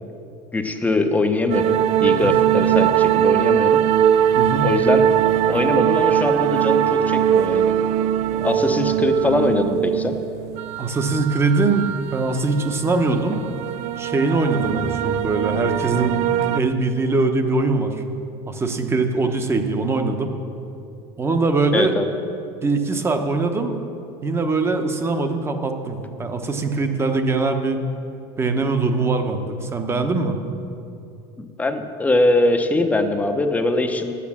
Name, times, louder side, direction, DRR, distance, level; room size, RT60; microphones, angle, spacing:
voice 1, 0.5-3.8 4.6-5.1 5.5-7.7 8.4-10.2 21.7-22.1 31.4-34.1, left 2 dB, 10° left, 6 dB, 0.8 m, -22 dB
sound 1, 1.5-16.6, right 10 dB, 55° right, 0.4 m, -21 dB
voice 2, 4.3-4.7 10.8-13.4 14.0-16.2 16.5-18.0 18.5-20.3 21.2-21.9 22.6-23.7 24.2-27.8 28.4-30.4, right 3 dB, 20° right, 6 dB, 0.9 m, -22 dB
10.0 x 8.4 x 7.3 m, 2.6 s
supercardioid pair, 135°, 14 cm